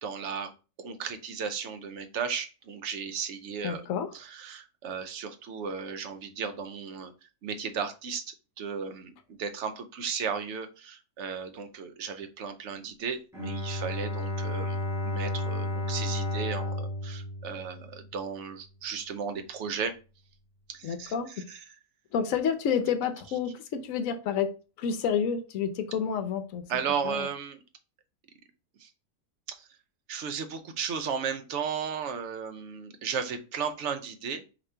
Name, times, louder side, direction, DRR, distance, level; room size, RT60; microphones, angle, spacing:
voice 1, 0.0-0.5 0.8-3.9 4.1-8.2 8.6-9.1 9.4-14.8 15.0-20.0 20.7-21.1 21.5-21.6 26.7-27.6 28.8-28.9 29.5-29.7 30.1-34.4, right 6 dB, 60° right, 0.8 m, -35 dB
voice 2, 3.6-4.1 20.8-21.4 22.1-26.6 27.0-27.3, left 7 dB, 65° left, 1.0 m, -29 dB
Bowed string instrument, 13.3-18.3, left 1 dB, ahead, 1.5 m, -32 dB
5.0 x 2.9 x 3.3 m
omnidirectional pair, 1.7 m